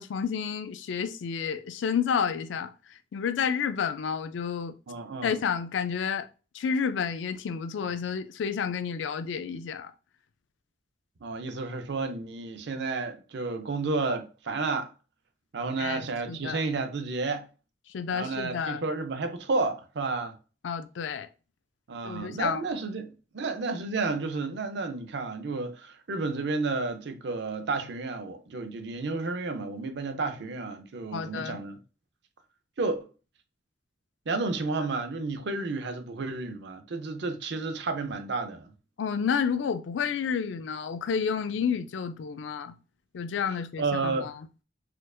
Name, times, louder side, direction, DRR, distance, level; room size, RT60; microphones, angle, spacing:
voice 1, 0.0-4.7 5.2-6.3 6.5-9.9 15.8-16.6 17.9-18.8 20.6-21.3 22.0-22.6 31.1-31.6 39.0-42.8 43.1-44.3, left 6 dB, 90° left, 0.4 m, -30 dB
voice 2, 4.9-5.4 11.2-14.9 15.5-17.5 18.1-20.4 21.9-31.8 32.8-33.1 34.3-38.7 43.8-44.3, right 3 dB, 65° right, 0.6 m, -31 dB
4.4 x 2.5 x 2.3 m
head